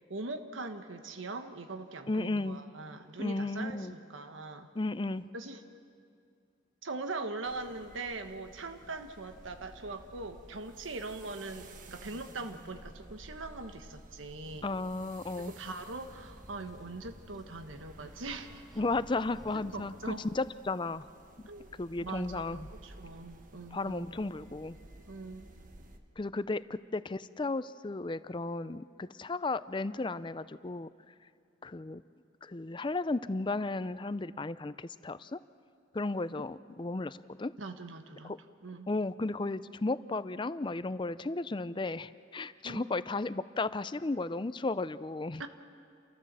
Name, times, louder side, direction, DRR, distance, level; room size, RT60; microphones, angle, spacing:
voice 1, 0.1-4.7 5.3-5.6 6.8-14.7 15.5-18.6 19.5-20.3 21.5-21.7 22.0-24.1 25.1-25.5 37.6-38.3 38.6-38.9 42.6-42.9 45.4-45.5, right 3 dB, 85° right, 7 dB, 1.3 m, -41 dB
voice 2, 2.1-2.6 3.2-3.9 4.8-5.2 14.6-15.5 18.8-21.0 21.8-22.7 23.7-24.8 26.2-30.9 31.6-32.0 32.4-35.4 35.9-37.5 38.2-38.4 38.9-45.4, left 2 dB, 25° left, 15 dB, 0.5 m, -34 dB
sound 1, 7.4-26.0, right 1 dB, 45° right, 1.3 m, -54 dB
sound 2, 14.4-20.3, equal, ahead, 1.2 m, -55 dB
29.5 x 14.5 x 7.5 m, 2.4 s
head